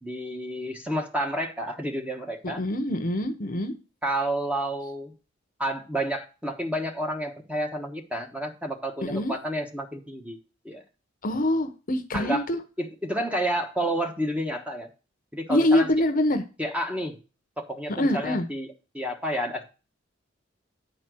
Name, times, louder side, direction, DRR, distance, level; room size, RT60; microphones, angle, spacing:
voice 1, 0.0-2.6 4.0-5.1 5.6-10.4 10.6-10.8 12.1-12.4 12.8-14.9 15.3-15.9 16.6-17.2 17.6-19.6, right 1 dB, 5° right, 3 dB, 1.2 m, -30 dB
voice 2, 2.4-3.7 9.0-9.4 11.2-12.6 15.5-16.4 18.0-18.5, left 1 dB, 45° left, 8 dB, 0.9 m, -24 dB
9.2 x 4.4 x 6.1 m, 0.32 s
head